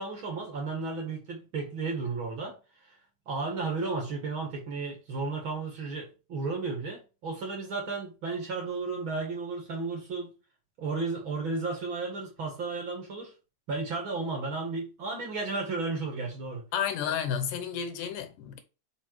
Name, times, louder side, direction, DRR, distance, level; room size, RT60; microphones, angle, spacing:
voice 1, 0.0-3.0 3.3-10.4 10.8-13.3 13.7-16.6, right 3 dB, 45° right, 2.0 m, -33 dB
voice 2, 16.7-18.6, left 8 dB, 85° left, 2.6 m, -31 dB
5.3 x 4.5 x 4.6 m
omnidirectional pair, 3.7 m